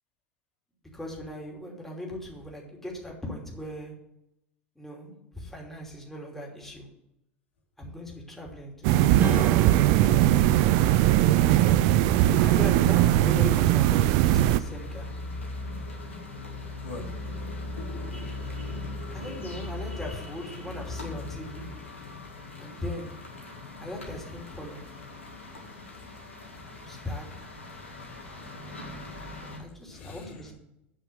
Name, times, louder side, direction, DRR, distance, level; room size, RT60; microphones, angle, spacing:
voice 1, 0.9-3.9 4.7-6.9 7.8-10.2 11.4-11.9 12.4-15.1 19.1-21.7 22.6-23.2 23.8-24.8 26.8-27.5 29.6-30.5, left 1 dB, 5° left, -2 dB, 2.9 m, -39 dB
sound 1, 8.8-14.6, right 14 dB, 55° right, 0.4 m, -20 dB
Strum, 9.2-14.1, right 2 dB, 25° right, 1.9 m, -38 dB
sound 2, 10.3-29.6, left 2 dB, 90° left, 2.0 m, -40 dB
voice 2, 16.8-17.1 17.8-18.3 18.7-19.5 29.9-30.5, left 3 dB, 70° left, -2 dB, 2.6 m, -44 dB
8.4 x 5.9 x 7.4 m, 0.84 s
hypercardioid pair, 80°, 7 cm